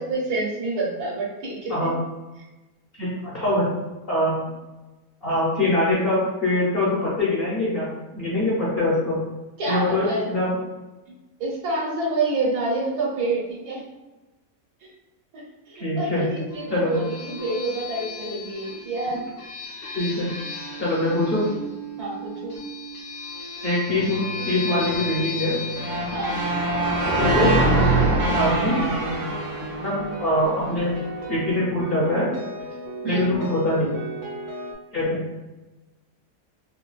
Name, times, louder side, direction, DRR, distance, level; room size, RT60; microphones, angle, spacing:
voice 1, 0.0-1.9 9.6-10.3 11.4-13.8 15.7-19.2 22.0-22.5 26.1-26.3 33.0-33.3, right 2 dB, 75° right, -4 dB, 1.4 m, -27 dB
voice 2, 3.0-3.7 4.1-4.4 5.2-9.2 9.7-10.6 15.8-16.3 16.7-17.0 19.9-20.3 20.8-21.4 23.6-25.6 27.0-27.6 28.2-28.8 29.8-31.0 31.3-32.3 33.0-34.0 34.9-35.2, left 1 dB, 50° left, -7 dB, 0.8 m, -23 dB
sound 1, 16.5-29.7, left 1 dB, 80° left, 1.4 m, -35 dB
sound 2, 23.9-26.2 27.1-34.7, right 2 dB, 60° right, 1.0 m, -35 dB
sound 3, 25.7-30.8, right 2 dB, 40° right, 0.5 m, -23 dB
3.7 x 2.2 x 2.3 m, 1.1 s
omnidirectional pair, 1.7 m